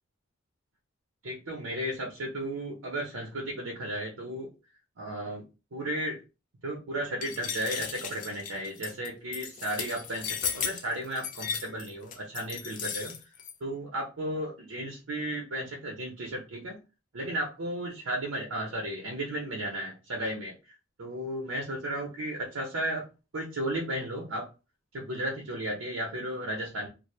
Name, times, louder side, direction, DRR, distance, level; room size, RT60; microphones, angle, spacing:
voice 1, 1.2-4.5 5.0-5.4 5.7-6.2 6.6-13.2 13.6-16.8 17.1-20.5 21.0-23.1 23.3-24.5 24.9-26.9, right 1 dB, 85° right, 0 dB, 0.7 m, -34 dB
sound 1, 7.2-13.5, left 7 dB, 40° left, 0.3 m, -35 dB
2.5 x 2.0 x 3.0 m, 0.30 s
head